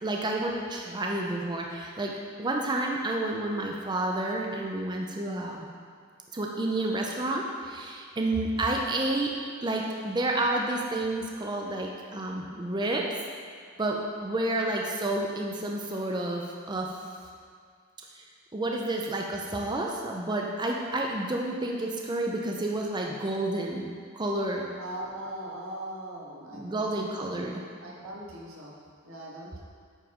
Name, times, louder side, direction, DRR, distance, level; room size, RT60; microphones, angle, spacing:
voice 1, 0.0-2.1 2.4-5.7 6.3-9.3 9.6-13.1 13.8-17.0 18.1-18.2 18.5-23.9 24.1-24.7 26.5-27.6, right 2 dB, 20° right, 0 dB, 0.5 m, -30 dB
voice 2, 24.8-27.5 27.8-28.8 29.0-29.6, right 1 dB, 85° right, -5 dB, 1.8 m, -40 dB
8.6 x 4.9 x 5.0 m, 2.1 s
head